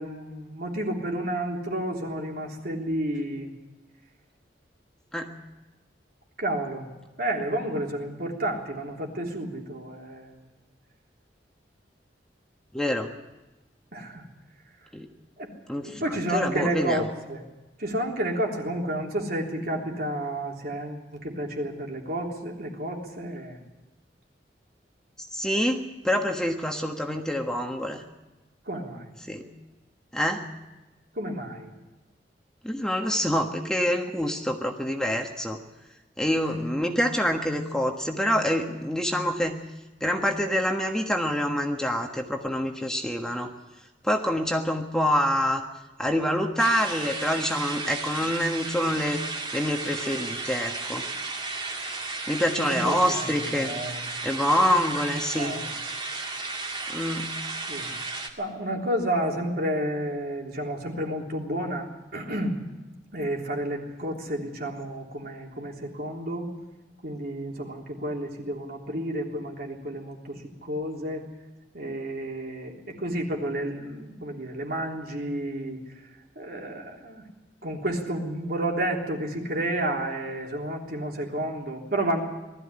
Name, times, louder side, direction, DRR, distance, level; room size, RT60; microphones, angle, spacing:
voice 1, 0.0-3.5 6.4-6.9 7.2-10.4 13.9-14.2 15.4-15.5 15.8-17.4 17.8-23.6 28.7-29.1 31.2-31.7 52.5-54.0 55.3-55.7 57.7-57.9 58.4-62.6 63.1-66.5 67.0-71.3 71.7-75.8 76.4-77.3 77.6-82.2, right 1 dB, 60° right, 0 dB, 3.5 m, -31 dB
voice 2, 12.7-13.1 14.9-15.1 15.7-17.1 25.2-28.0 29.2-29.5 30.1-30.5 32.6-35.6 36.2-39.5 40.0-43.5 44.0-45.6 46.0-49.2 49.5-51.1 52.3-53.7 54.2-55.6 56.9-57.3, equal, 5° left, 3 dB, 1.4 m, -26 dB
sound 1, 46.6-58.3, right 3 dB, 30° right, 2.3 m, -34 dB
20.0 x 13.5 x 9.8 m, 1.1 s
head